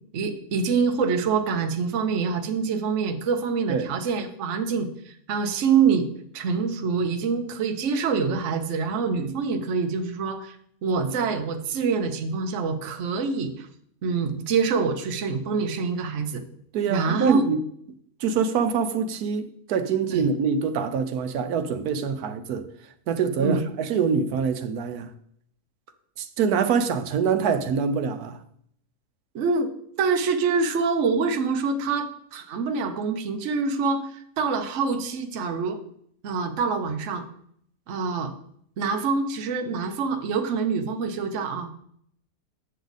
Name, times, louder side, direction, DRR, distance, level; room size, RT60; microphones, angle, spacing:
voice 1, 0.1-6.1 6.3-10.6 10.8-13.7 14.0-16.4 16.9-17.5 20.1-20.3 23.4-23.6 29.3-29.7 30.0-35.8 36.2-37.2 37.9-38.3 38.8-41.8, right 5 dB, 60° right, 1.0 m, -25 dB
voice 2, 16.7-17.6 18.2-22.7 23.1-25.1 26.2-28.4, right 6 dB, 80° right, 1.2 m, -25 dB
7.9 x 6.5 x 4.0 m
omnidirectional pair, 1.6 m